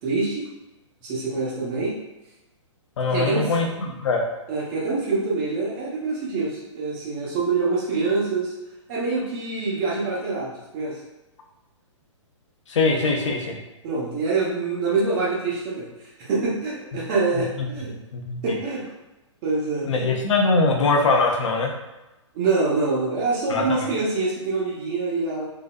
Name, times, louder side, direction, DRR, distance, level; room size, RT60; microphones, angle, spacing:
voice 1, 0.0-0.4 1.0-1.9 3.1-3.6 4.5-8.5 8.9-11.0 13.8-17.9 18.4-18.8 19.4-20.1 22.3-25.5, right 3 dB, 35° right, -6 dB, 1.0 m, -25 dB
voice 2, 3.0-4.3 12.7-13.6 17.6-18.6 19.9-21.7 23.5-23.6, left 3 dB, 70° left, 1 dB, 0.7 m, -22 dB
3.8 x 2.1 x 2.4 m, 1.0 s
hypercardioid pair, 130°, 16 cm